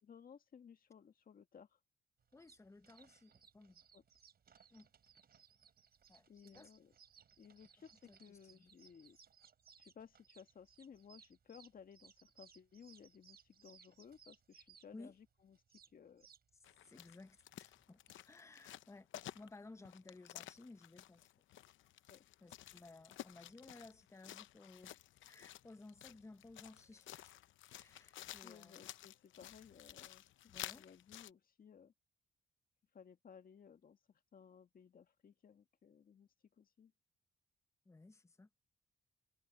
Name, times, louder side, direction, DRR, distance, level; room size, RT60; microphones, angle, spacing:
voice 1, 0.0-1.8 3.9-4.0 6.3-6.9 7.4-9.2 9.8-16.3 22.1-22.2 28.4-31.9 32.9-36.9, left 7 dB, 45° left, 1.8 m, -59 dB
sound 1, 2.2-18.2, right 7 dB, 50° right, 4.9 m, -66 dB
voice 2, 2.3-3.8 4.7-4.9 6.1-6.7 8.1-8.8 14.9-15.1 16.9-19.1 19.3-21.3 22.4-25.0 25.3-27.4 27.7-28.8 30.5-30.9 37.8-38.5, left 3 dB, 15° left, 0.9 m, -58 dB
sound 2, 16.6-31.3, left 13 dB, 75° left, 0.8 m, -53 dB
cardioid pair, 90°, 20 cm